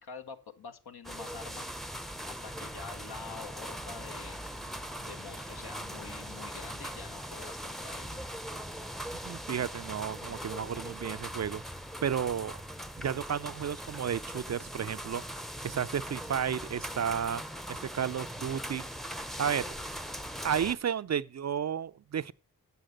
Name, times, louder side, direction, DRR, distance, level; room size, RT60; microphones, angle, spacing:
voice 1, 0.0-1.7 2.2-4.4 5.0-8.3, left 5 dB, 75° left, 1.3 m, -46 dB
sound 1, 1.0-20.7, equal, ahead, 0.7 m, -40 dB
voice 2, 9.2-11.6 12.0-12.6 13.0-15.2 15.6-17.4 17.7-18.8 19.4-19.6 20.4-22.3, right 8 dB, 45° right, 0.4 m, -32 dB
7.8 x 7.0 x 6.5 m
cardioid pair, 45°, 39 cm